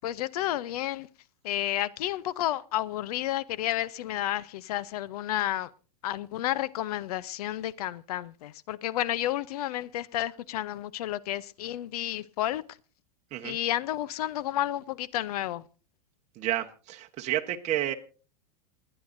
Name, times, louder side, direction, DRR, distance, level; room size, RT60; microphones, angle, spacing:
voice 1, 0.0-1.1 1.4-5.7 6.0-12.6 13.4-15.6, left 13 dB, 70° left, 0.6 m, -31 dB
voice 2, 16.4-17.9, right 13 dB, 35° right, 1.0 m, -30 dB
27.5 x 9.8 x 2.6 m
hypercardioid pair, 125°, 20 cm